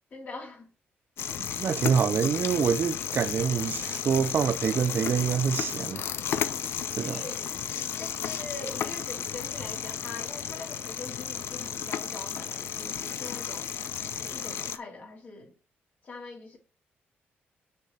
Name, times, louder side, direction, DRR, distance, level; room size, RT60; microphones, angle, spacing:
voice 1, 0.1-0.7 7.0-7.4 8.0-13.7 14.2-15.5 16.0-16.6, left 3 dB, 45° left, 2.9 m, -42 dB
sound 1, 1.2-14.8, left 8 dB, 70° left, 0.7 m, -33 dB
voice 2, 1.4-6.0 7.0-7.2, right 7 dB, 55° right, 0.6 m, -26 dB
6.6 x 4.9 x 5.5 m
cardioid pair, 105°, 4 cm